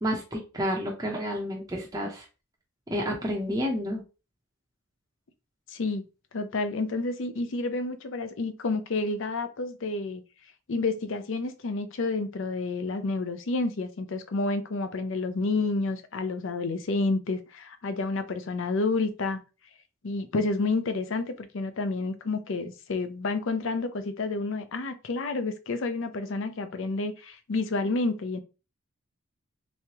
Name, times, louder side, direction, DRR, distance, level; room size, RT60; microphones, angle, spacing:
voice 1, 0.0-2.2 2.9-4.0, equal, 15° right, 0.6 m, -30 dB
voice 2, 5.7-6.0 6.3-10.2 10.7-19.4 20.0-28.4, left 3 dB, 65° left, 0.5 m, -29 dB
3.4 x 3.1 x 2.8 m
head